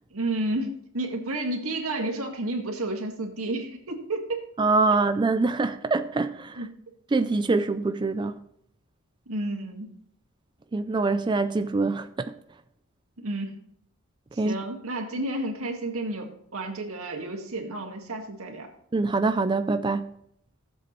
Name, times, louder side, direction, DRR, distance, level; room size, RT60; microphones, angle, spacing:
voice 1, 0.1-4.2 6.6-6.7 9.3-9.9 13.2-13.6 14.3-18.7, right 2 dB, 85° right, 1.9 m, -31 dB
voice 2, 4.6-6.6 7.1-8.3 10.7-12.3 14.4-14.6 18.9-20.1, right 3 dB, 20° right, 0.4 m, -24 dB
15.5 x 7.7 x 3.1 m
head